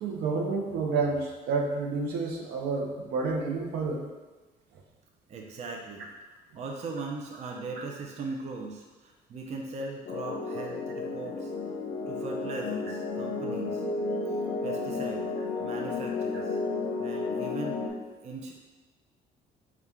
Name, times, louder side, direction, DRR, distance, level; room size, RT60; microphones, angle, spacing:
voice 1, 0.0-4.0, right 4 dB, 80° right, 0 dB, 0.7 m, -29 dB
voice 2, 5.3-6.1 6.5-11.5 12.1-13.8 14.6-15.3 15.6-16.6 17.0-17.8 18.2-18.5, right 3 dB, 40° right, 1 dB, 0.5 m, -39 dB
sound 1, 10.1-17.9, left 3 dB, 65° left, 0.7 m, -32 dB
4.2 x 2.4 x 3.5 m, 1.2 s
cardioid pair, 110°, 17 cm